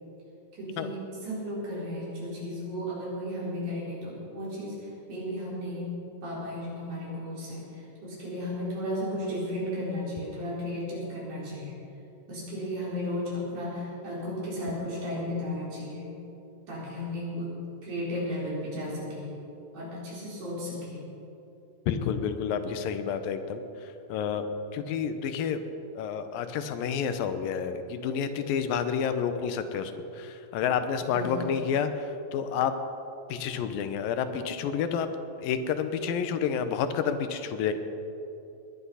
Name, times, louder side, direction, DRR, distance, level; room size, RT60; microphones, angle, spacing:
voice 1, 0.5-5.9 6.2-11.8 12.3-16.1 16.7-17.5 17.8-19.3 19.7-21.1 31.1-31.6, left 1 dB, 60° right, -6 dB, 5.7 m, -34 dB
voice 2, 21.9-23.6 24.1-24.5 24.7-25.6 25.9-32.7 33.3-35.1 35.4-37.7, left 7 dB, 85° left, 9 dB, 2.6 m, -29 dB
20.5 x 10.5 x 5.6 m, 2.9 s
omnidirectional pair, 4.0 m